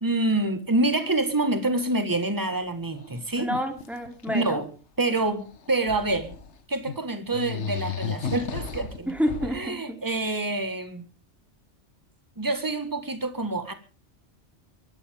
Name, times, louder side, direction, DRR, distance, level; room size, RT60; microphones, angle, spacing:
voice 1, 0.0-3.5 4.3-4.7 5.0-6.3 6.7-9.1 9.5-11.0 12.4-13.7, right 2 dB, 20° right, 1.7 m, -27 dB
sound 1, 2.5-2.7 3.0-4.5 5.4-6.5 6.9-7.0 7.3-9.7, left 6 dB, 85° left, 1.5 m, -34 dB
voice 2, 3.4-4.6 9.1-10.0, equal, ahead, 3.0 m, -29 dB
22.5 x 14.0 x 3.6 m
omnidirectional pair, 1.1 m